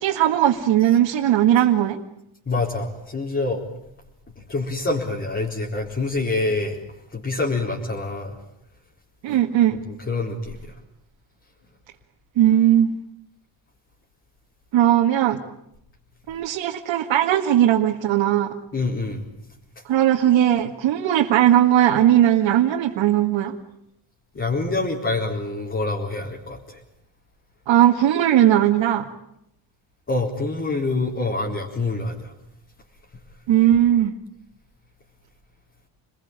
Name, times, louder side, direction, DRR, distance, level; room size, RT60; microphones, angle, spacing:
voice 1, 0.0-2.0 9.2-9.8 12.4-12.9 14.7-15.4 16.3-18.5 19.9-23.5 27.7-29.1 33.5-34.1, right 11 dB, 80° right, 1 dB, 2.1 m, -18 dB
voice 2, 2.5-3.6 4.4-6.8 7.1-8.4 10.1-10.8 18.7-19.3 24.3-26.8 30.1-32.3, left 3 dB, 25° left, -3 dB, 4.4 m, -26 dB
29.0 x 21.0 x 9.0 m, 0.81 s
cardioid pair, 130°, 44 cm